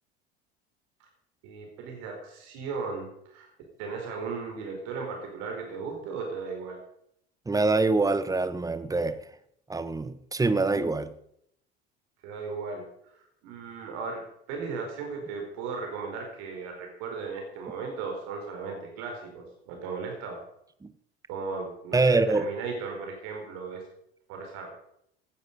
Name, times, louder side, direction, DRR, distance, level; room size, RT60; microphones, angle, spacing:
voice 1, 1.4-3.5 3.8-6.8 12.2-12.9 13.1-20.4 21.3-23.8 24.3-24.7, right 4 dB, 55° right, 2 dB, 4.5 m, -36 dB
voice 2, 7.5-9.2 9.7-11.1 20.8-20.9 21.9-22.4, right 3 dB, 10° right, 12 dB, 1.3 m, -24 dB
17.5 x 11.5 x 5.3 m, 0.72 s
figure-of-eight pair, 70°, 32 cm